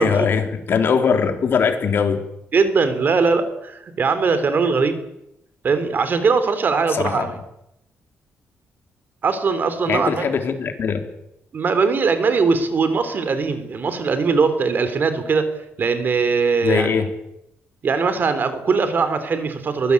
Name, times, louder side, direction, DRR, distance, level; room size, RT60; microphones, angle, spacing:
voice 1, 0.0-2.2 6.9-7.3 9.9-11.1 16.6-17.1, left 6 dB, 55° left, 5 dB, 3.7 m, -21 dB
voice 2, 2.5-5.0 5.6-7.3 9.2-10.3 11.5-15.5 15.8-17.0 17.8-19.9, right 4 dB, 45° right, 11 dB, 3.4 m, -20 dB
23.5 x 18.0 x 8.5 m, 0.84 s
cardioid pair, 120°, 5 cm